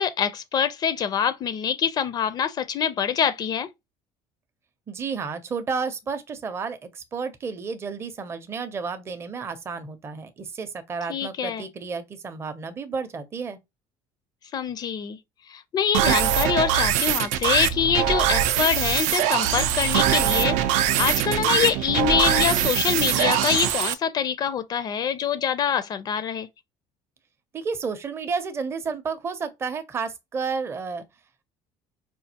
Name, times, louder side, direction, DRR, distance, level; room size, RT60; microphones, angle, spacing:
voice 1, 0.0-3.7 11.1-11.6 14.5-15.2 15.5-26.5, left 8 dB, 35° left, 0.4 m, -25 dB
voice 2, 4.9-13.6 27.5-31.0, right 5 dB, 20° right, 0.5 m, -31 dB
sound 1, 15.9-23.9, right 11 dB, 90° right, 0.5 m, -22 dB
5.0 x 2.4 x 2.8 m
cardioid pair, 160°, 12 cm